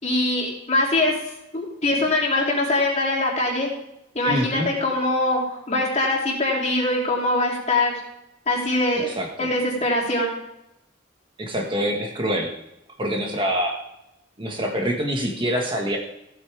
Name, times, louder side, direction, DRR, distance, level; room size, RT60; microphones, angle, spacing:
voice 1, 0.0-1.1 1.5-3.7 4.1-7.9 8.5-9.1 9.4-10.3, left 2 dB, 35° left, -2 dB, 3.2 m, -22 dB
voice 2, 4.2-4.7 9.0-9.5 11.4-12.5 13.0-13.8 14.4-16.0, equal, 25° right, 1 dB, 1.6 m, -25 dB
15.5 x 8.3 x 3.5 m, 0.84 s
head